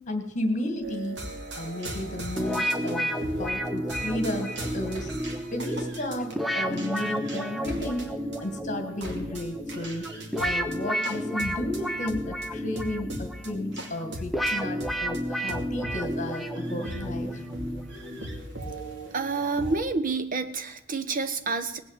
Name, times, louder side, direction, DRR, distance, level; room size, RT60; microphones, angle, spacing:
voice 1, 0.1-1.2 1.5-3.1 3.4-5.1 5.5-8.2 8.4-10.1 10.4-17.4, left 1 dB, 40° left, 6 dB, 2.1 m, -33 dB
sound 1, 0.8-19.8, right 1 dB, 60° right, 2.8 m, -39 dB
sound 2, 2.4-18.3, equal, ahead, 0.8 m, -32 dB
voice 2, 19.1-21.8, right 4 dB, 45° right, 9 dB, 1.2 m, -28 dB
18.5 x 8.4 x 8.1 m, 0.86 s
head